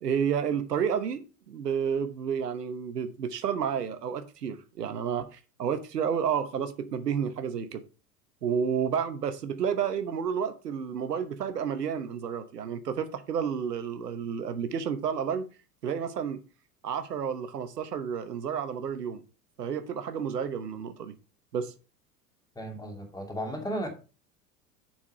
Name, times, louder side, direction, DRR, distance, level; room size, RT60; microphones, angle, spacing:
voice 1, 0.0-7.8 8.4-15.4 15.8-16.4 16.8-19.2 19.6-21.1 21.5-21.7, right 7 dB, 75° right, 1.1 m, -31 dB
voice 2, 22.5-23.9, equal, 10° left, 2.7 m, -34 dB
7.3 x 6.0 x 4.9 m
figure-of-eight pair, 80°, 48 cm